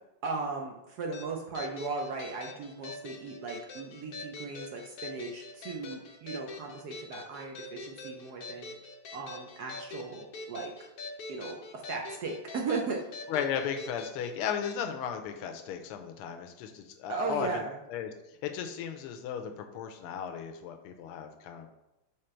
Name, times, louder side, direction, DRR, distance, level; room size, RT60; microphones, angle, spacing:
voice 1, 0.2-8.7 9.1-10.7 11.3-13.0 17.1-17.8, right 4 dB, 65° right, 1 dB, 1.0 m, -37 dB
sound 1, 1.1-14.8, left 3 dB, 65° left, 0.9 m, -44 dB
voice 2, 13.3-17.6 17.9-21.7, left 8 dB, 85° left, 5 dB, 1.6 m, -35 dB
6.5 x 3.8 x 4.4 m, 0.93 s
omnidirectional pair, 2.4 m